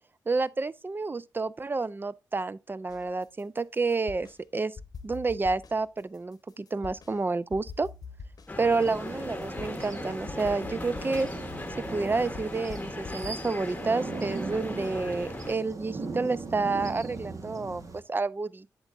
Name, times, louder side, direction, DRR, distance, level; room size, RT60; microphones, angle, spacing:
voice 1, 0.3-4.3 4.5-4.7 5.0-7.9 8.6-11.3 11.9-18.7, right 3 dB, 30° right, 0.4 m, -29 dB
sound 1, 2.9-4.4 4.8-7.2 7.5-13.3, left 5 dB, 60° left, 0.8 m, -45 dB
sound 2, 8.5-15.6, left 2 dB, 20° left, 1.0 m, -38 dB
sound 3, 8.8-18.0, right 3 dB, 50° right, 1.2 m, -39 dB
8.0 x 6.6 x 2.5 m
supercardioid pair, 50°, 7 cm